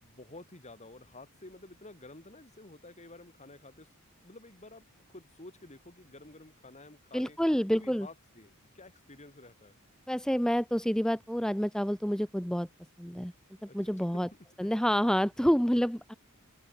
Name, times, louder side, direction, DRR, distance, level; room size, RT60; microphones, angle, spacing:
voice 1, 0.0-3.9 4.2-7.4 7.7-9.8 13.7-14.4, left 2 dB, 30° left, 4.3 m, -51 dB
voice 2, 7.1-8.1 10.1-12.7 13.0-13.3 13.6-14.3 14.6-16.1, equal, 5° left, 1.2 m, -28 dB
open air
head